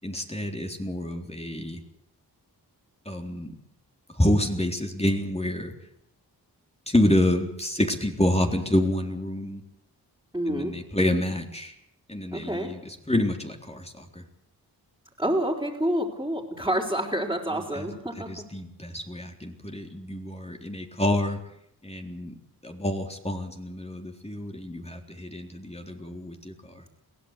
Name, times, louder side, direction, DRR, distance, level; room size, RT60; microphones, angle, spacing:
voice 1, 0.0-1.8 3.1-3.5 4.1-5.7 6.9-9.6 10.5-11.7 12.1-14.2 17.5-17.9 18.2-21.4 21.8-22.3 22.6-26.8, left 1 dB, 15° left, 3 dB, 3.9 m, -28 dB
voice 2, 10.3-10.7 12.3-12.7 15.2-18.3, right 1 dB, 5° right, -6 dB, 4.8 m, -28 dB
22.5 x 16.5 x 8.4 m, 0.78 s
cardioid pair, 50°, 40 cm